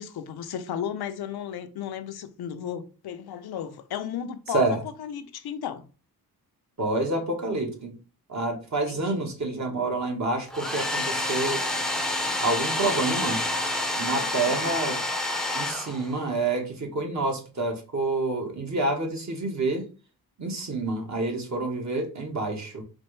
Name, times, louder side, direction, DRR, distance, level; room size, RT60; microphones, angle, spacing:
voice 1, 0.0-5.8 8.9-9.2 14.2-14.8, left 9 dB, 85° left, 0.6 m, -35 dB
voice 2, 6.8-7.9 8.3-11.6 12.4-13.4 14.0-15.0 15.5-19.8 20.4-22.8, right 2 dB, 50° right, 1.2 m, -28 dB
Domestic sounds home sounds, 10.5-16.4, left 1 dB, ahead, 0.5 m, -28 dB
4.2 x 2.6 x 3.2 m
cardioid pair, 95°, 37 cm